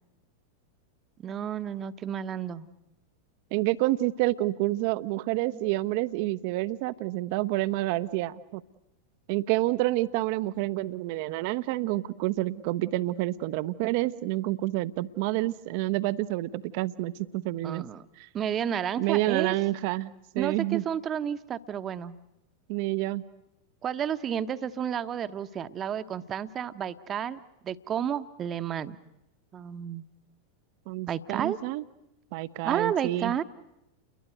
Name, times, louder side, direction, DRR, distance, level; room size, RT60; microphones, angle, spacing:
voice 1, 1.2-2.7 5.5-5.6 17.6-18.0 18.3-19.5 20.4-22.2 23.8-29.0 29.5-30.0 31.1-31.6 32.6-33.4, right 9 dB, 25° right, 12 dB, 1.1 m, -31 dB
voice 2, 3.5-8.6 9.3-17.9 18.2-18.3 19.0-20.8 22.7-23.2 30.9-31.8 32.3-33.3, right 18 dB, 45° right, 15 dB, 0.9 m, -28 dB
30.0 x 22.0 x 8.0 m, 0.88 s
figure-of-eight pair, 90°, 0 cm